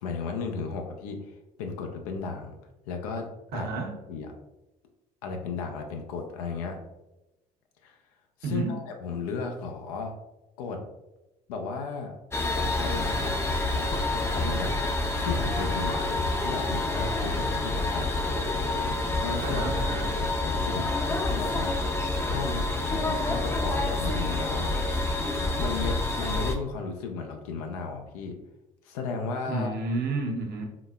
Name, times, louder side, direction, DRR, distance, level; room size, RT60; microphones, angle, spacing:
voice 1, 0.0-1.2 1.6-2.5 2.9-3.7 4.1-4.3 5.2-6.8 7.8-7.9 8.4-10.2 10.6-10.8 11.5-12.2 12.8-13.3 13.7-14.9 15.2-18.2 19.2-19.6 20.1-21.7 22.2-24.7 25.6-28.4 28.8-29.8, left 5 dB, 90° left, 4 dB, 0.4 m, -35 dB
voice 2, 3.5-3.9 8.4-8.7 19.4-20.2 29.5-30.6, right 3 dB, 60° right, 1 dB, 0.8 m, -31 dB
sound 1, 12.3-26.6, left 2 dB, 15° left, 0.4 m, -28 dB
3.8 x 2.1 x 2.3 m, 0.97 s
hypercardioid pair, 65°, 18 cm